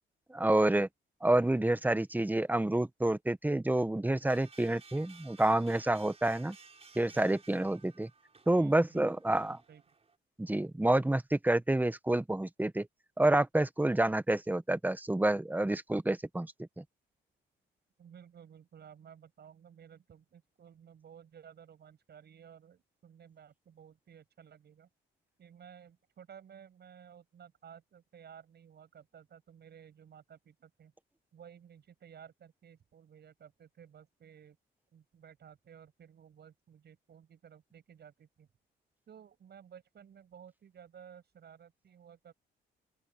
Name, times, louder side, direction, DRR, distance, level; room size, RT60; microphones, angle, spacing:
voice 1, 0.3-0.9 1.2-6.6 6.9-8.1 8.5-9.6 10.4-12.9 13.2-16.8, right 1 dB, 10° right, 1.2 m, -28 dB
sound 1, 4.3-10.2, right 4 dB, 30° right, 4.3 m, -57 dB
voice 2, 8.5-9.8 18.0-24.9 25.4-30.9 31.3-34.6 34.9-38.5 39.1-42.3, right 8 dB, 55° right, 7.6 m, -55 dB
open air
cardioid pair, 90°, 20 cm